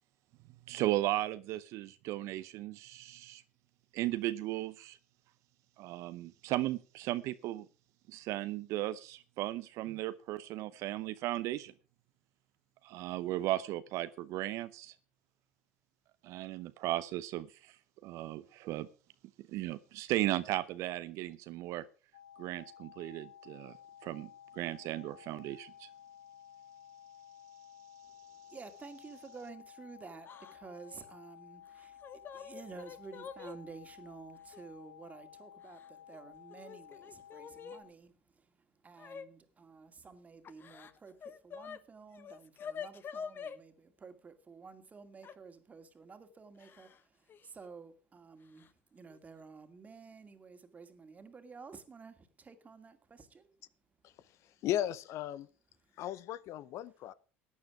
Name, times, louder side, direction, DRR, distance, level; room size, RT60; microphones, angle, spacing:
voice 1, 0.7-3.4 3.9-5.0 5.8-7.7 8.1-11.7 12.8-14.9 16.2-17.7 18.0-18.9 19.5-21.9 22.4-23.7 24.0-25.9, right 15 dB, 60° right, 0.7 m, -36 dB
sound 1, 22.1-37.8, left 9 dB, 90° left, 3.9 m, -55 dB
voice 2, 28.3-53.6 55.9-56.0, right 5 dB, 25° right, 2.3 m, -52 dB
Yell / Crying sobbing, 30.2-30.6 30.9-31.0 31.8-33.6 34.5-34.6 35.6-36.2 36.5-37.8 39.0-39.3 40.4-41.8 42.1-43.6 45.2-45.4 46.6-47.0 47.3-47.5 48.6-48.7 49.1-49.4, left 6 dB, 35° left, 1.1 m, -46 dB
voice 3, 54.6-55.5 56.0-57.1, left 12 dB, 55° left, 0.7 m, -35 dB
15.0 x 9.6 x 4.9 m
hypercardioid pair, 80°, 6 cm